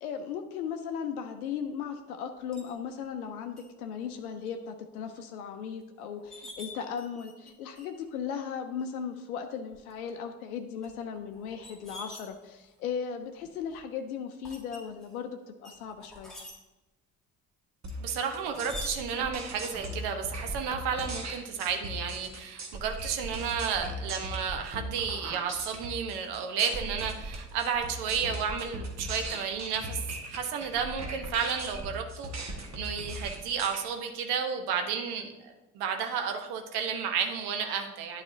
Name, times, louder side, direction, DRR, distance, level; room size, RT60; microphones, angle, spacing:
voice 1, 0.0-16.4, left 7 dB, 80° left, 6 dB, 0.6 m, -37 dB
sound 1, 2.5-2.7 3.6-3.7 4.1-4.5 4.9-5.0 5.8-5.9 6.2-7.5 7.8-8.1 8.8-8.9 9.7-10.1 10.8-12.8 13.4-13.8 14.4-15.2 15.6-16.5 17.9-19.0, left 1 dB, ahead, 2.1 m, -46 dB
sound 2, 17.8-33.8, right 1 dB, 40° right, 1.5 m, -38 dB
voice 2, 18.0-38.2, right 7 dB, 65° right, 5 dB, 1.1 m, -32 dB
11.5 x 4.1 x 2.7 m, 1.0 s
figure-of-eight pair, 45°, 43 cm